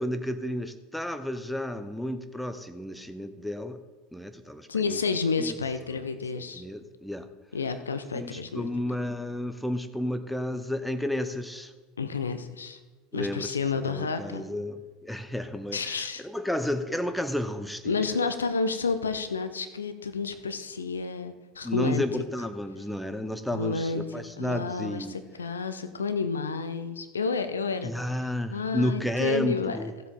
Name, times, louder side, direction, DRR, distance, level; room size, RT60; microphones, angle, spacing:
voice 1, 0.0-3.8 4.1-5.0 5.4-5.6 6.3-7.3 8.1-11.7 13.1-13.6 13.9-17.9 21.6-25.1 27.8-29.9, left 1 dB, ahead, 9 dB, 0.7 m, -32 dB
voice 2, 4.7-6.6 7.5-8.7 12.0-12.8 13.1-14.5 15.7-16.2 17.8-22.0 23.5-24.0 24.4-27.9 28.5-29.8, left 4 dB, 80° left, 10 dB, 0.7 m, -30 dB
14.5 x 7.4 x 3.7 m, 1.2 s
figure-of-eight pair, 75°, 0 cm